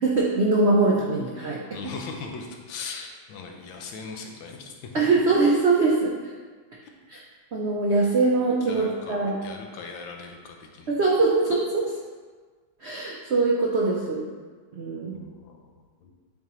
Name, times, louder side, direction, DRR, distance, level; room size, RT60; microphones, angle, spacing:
voice 1, 0.0-1.6 4.9-6.1 7.1-7.2 7.5-9.4 10.9-11.9 12.8-14.2 14.7-15.2, right 3 dB, 85° right, -3 dB, 0.5 m, -22 dB
voice 2, 1.7-5.0 6.8-6.9 8.7-11.0 15.1-16.1, left 4 dB, 90° left, 2 dB, 1.5 m, -39 dB
8.6 x 3.6 x 3.0 m, 1.5 s
omnidirectional pair, 2.1 m